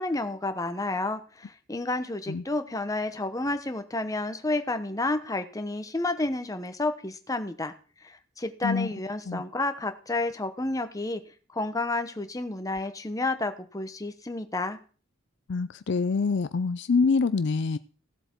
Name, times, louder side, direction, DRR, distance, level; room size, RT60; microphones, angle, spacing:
voice 1, 0.0-7.7 8.0-11.2 11.5-14.8, left 2 dB, 15° left, 0.9 m, -30 dB
voice 2, 15.5-17.8, left 4 dB, 60° left, 0.4 m, -25 dB
16.0 x 7.7 x 4.5 m
head